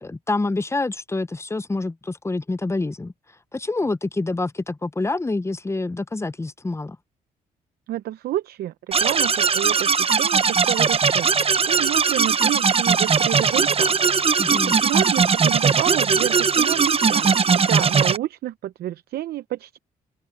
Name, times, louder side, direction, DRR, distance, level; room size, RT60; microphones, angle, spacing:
voice 1, 0.0-3.1 3.5-7.0 14.4-14.7, left 2 dB, 15° left, 0.8 m, -27 dB
voice 2, 7.9-13.9 14.5-19.8, right 14 dB, 70° right, 0.7 m, -29 dB
sound 1, 8.9-18.2, right 5 dB, 35° right, 0.9 m, -19 dB
open air
supercardioid pair, 60°, 17 cm